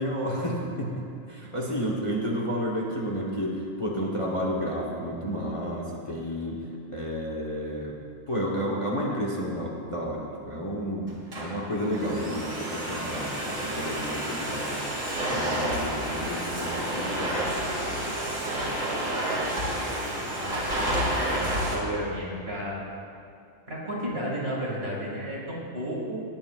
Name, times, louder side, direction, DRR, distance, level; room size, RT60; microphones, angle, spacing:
voice 1, 0.0-6.6 6.9-8.0 8.3-14.9 15.3-17.5 17.9-18.6 20.8-21.0, equal, 25° left, -2 dB, 1.1 m, -31 dB
Domestic sounds home sounds, 11.1-21.7, right 1 dB, 75° right, 2.6 m, -30 dB
voice 2, 19.7-20.0 20.4-22.8 23.7-26.2, equal, 50° right, -5 dB, 2.5 m, -33 dB
18.5 x 8.6 x 2.4 m, 2.5 s
omnidirectional pair, 1.3 m